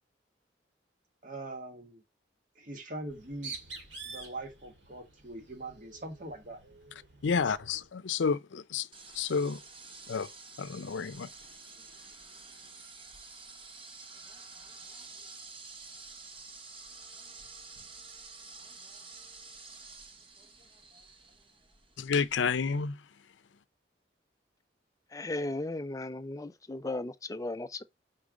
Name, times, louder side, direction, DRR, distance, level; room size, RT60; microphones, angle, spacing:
voice 1, 1.2-2.0 2.6-3.5 4.0-6.6, right 2 dB, 45° right, 1.6 m, -42 dB
Bird, 3.0-7.9, right 4 dB, 90° right, 2.4 m, -48 dB
voice 2, 7.2-8.9 9.1-9.6 10.1-10.3 10.6-11.3 22.0-23.0, left 5 dB, 85° left, 0.5 m, -30 dB
sound 1, 8.9-22.8, right 4 dB, 30° right, 0.7 m, -50 dB
voice 3, 25.1-27.8, left 2 dB, 20° left, 0.4 m, -36 dB
4.9 x 4.6 x 5.1 m
head